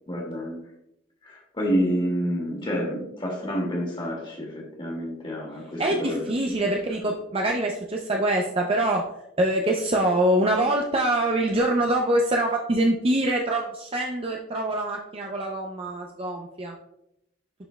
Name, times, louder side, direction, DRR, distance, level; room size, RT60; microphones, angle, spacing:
voice 1, 0.1-0.6 1.2-6.3, equal, 30° left, -2 dB, 2.0 m, -28 dB
voice 2, 5.8-9.1 9.4-16.7, right 1 dB, 30° right, 1 dB, 0.5 m, -24 dB
11.0 x 4.3 x 2.2 m, 0.81 s
head